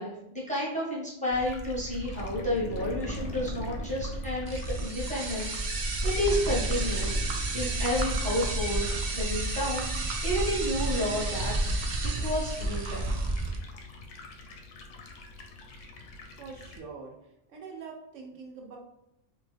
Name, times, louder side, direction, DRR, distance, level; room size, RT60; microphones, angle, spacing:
voice 1, 0.0-11.5 12.0-13.1, left 1 dB, 10° left, -5 dB, 0.7 m, -31 dB
Stream, 1.3-16.8, left 3 dB, 85° left, 0.9 m, -47 dB
sound 1, 1.3-12.5, equal, 40° right, 0.7 m, -39 dB
sound 2, 4.5-13.6, right 2 dB, 65° right, 0.4 m, -30 dB
voice 2, 16.4-18.8, right 5 dB, 85° right, 0 dB, 1.1 m, -44 dB
3.0 x 2.2 x 3.3 m, 0.85 s
omnidirectional pair, 1.3 m